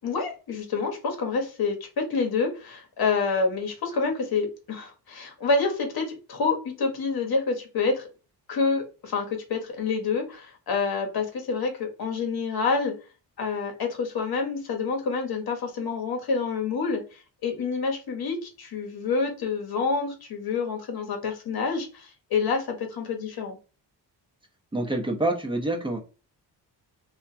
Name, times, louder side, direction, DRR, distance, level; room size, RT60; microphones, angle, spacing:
voice 1, 0.0-8.1 8.5-12.9 13.4-23.6, left 4 dB, 60° left, 4 dB, 1.0 m, -28 dB
voice 2, 24.7-26.0, right 2 dB, 10° right, 2 dB, 0.7 m, -27 dB
2.9 x 2.3 x 2.6 m, 0.33 s
cardioid pair, 100°, 42 cm